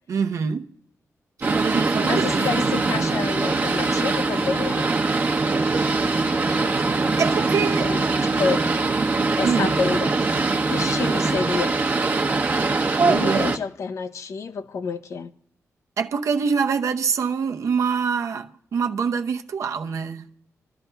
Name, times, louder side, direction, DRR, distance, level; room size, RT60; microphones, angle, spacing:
voice 1, 0.1-0.7 1.4-2.5 5.4-6.0 6.6-7.9 9.4-9.8 13.0-13.5 16.0-20.3, right 6 dB, 70° right, 0.7 m, -25 dB
Boat Water vehicle, 1.4-13.6, right 3 dB, 35° right, 1.0 m, -22 dB
voice 2, 2.0-4.9 7.8-8.6 9.4-10.1 10.7-11.7 13.1-15.3, left 5 dB, 65° left, 0.6 m, -28 dB
26.5 x 12.5 x 2.3 m
wide cardioid pair, 145°, 6 cm